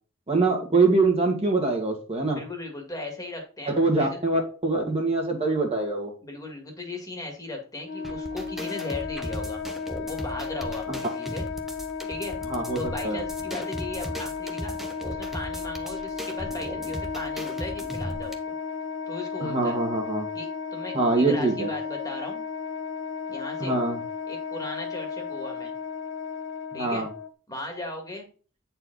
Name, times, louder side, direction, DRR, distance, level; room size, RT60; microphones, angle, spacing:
voice 1, 0.3-2.4 3.7-6.1 10.9-11.0 12.5-12.8 13.0-13.2 19.4-20.3 20.9-21.7 23.6-24.0 26.7-27.1, right 3 dB, 30° right, 1 dB, 1.8 m, -24 dB
voice 2, 2.3-4.2 6.2-9.6 10.1-11.5 12.1-12.4 12.7-14.7 15.0-18.5 19.1-19.8 20.3-20.5 20.7-22.4 23.3-23.8 24.3-25.7 26.7-27.1 27.5-28.3, left 2 dB, 20° left, 2 dB, 1.9 m, -37 dB
Wind instrument woodwind instrument, 7.8-27.3, left 5 dB, 65° left, 0.8 m, -34 dB
sound 1, 8.0-18.3, equal, ahead, 1.0 m, -37 dB
9.0 x 4.5 x 3.9 m, 0.38 s
head